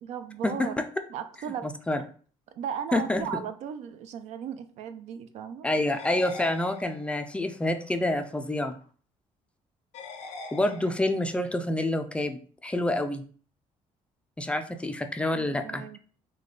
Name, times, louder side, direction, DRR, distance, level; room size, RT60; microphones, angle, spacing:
voice 1, 0.0-0.8 1.1-1.7 2.5-5.7 10.7-10.8 15.3-16.0, right 8 dB, 70° right, 10 dB, 0.5 m, -36 dB
voice 2, 2.9-3.2 5.6-8.8 10.5-13.2 14.4-15.8, left 1 dB, 10° left, 6 dB, 0.3 m, -27 dB
sound 1, 5.9-7.3 9.9-11.3, left 3 dB, 85° left, 0.6 m, -43 dB
4.9 x 2.2 x 3.8 m, 0.44 s
cardioid pair, 150°, 12 cm